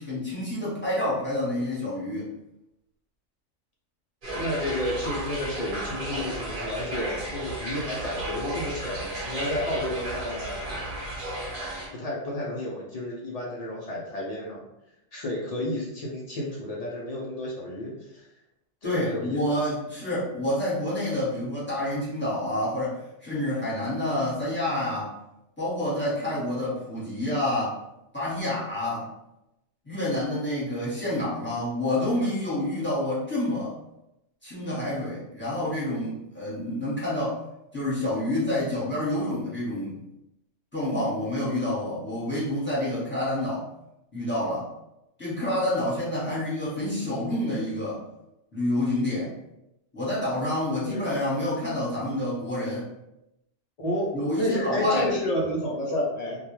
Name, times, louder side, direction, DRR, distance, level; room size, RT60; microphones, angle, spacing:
voice 1, 0.0-2.3 18.8-25.1 25.6-27.8 28.1-29.1 29.8-33.8 34.4-37.4 37.7-40.0 40.7-43.6 44.1-44.7 45.2-48.0 48.5-49.3 49.9-52.9 54.1-55.2, left 1 dB, 10° left, -9 dB, 0.9 m, -28 dB
sound 1, 4.2-11.9, right 1 dB, 45° right, 0.9 m, -34 dB
voice 2, 4.3-10.8 11.9-14.6 15.1-18.3 18.8-19.6 50.8-51.2 53.8-56.4, left 1 dB, 70° left, -4 dB, 0.3 m, -31 dB
2.2 x 2.2 x 3.0 m, 0.86 s
omnidirectional pair, 1.3 m